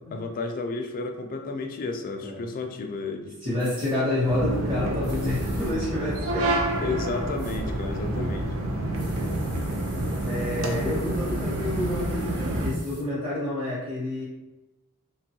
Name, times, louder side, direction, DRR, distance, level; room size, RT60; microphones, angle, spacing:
voice 1, 0.1-3.4 6.8-8.5, left 3 dB, 40° left, 5 dB, 0.3 m, -32 dB
voice 2, 3.4-6.9 8.9-9.4 10.2-14.3, left 1 dB, 25° right, -11 dB, 0.8 m, -29 dB
sound 1, 3.6-3.9 5.0-5.7 7.4-7.6 8.9-13.0, right 1 dB, 90° right, 1.0 m, -48 dB
sound 2, 4.2-12.7, right 1 dB, 65° right, 0.5 m, -28 dB
2.9 x 2.2 x 2.7 m, 1.0 s
head